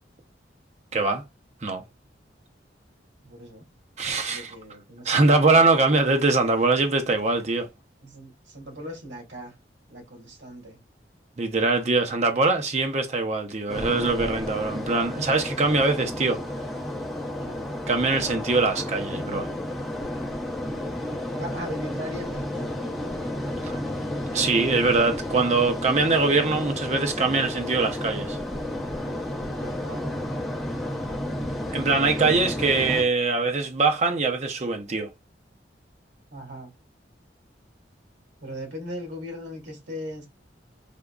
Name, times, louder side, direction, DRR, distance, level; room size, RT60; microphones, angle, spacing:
voice 1, 0.9-1.2 1.6-1.8 4.0-4.6 5.0-7.7 11.4-16.4 17.9-19.5 23.6-23.7 24.3-28.4 31.7-35.1, right 3 dB, 40° right, 0.6 m, -22 dB
voice 2, 3.2-3.7 4.3-6.0 8.0-9.5 9.9-10.8 17.4-17.7 21.4-22.7 29.6-30.1 36.3-36.7 38.4-40.3, equal, 85° right, 1.5 m, -38 dB
sound 1, 13.7-33.0, left 1 dB, ahead, 0.9 m, -32 dB
3.6 x 2.7 x 2.4 m
head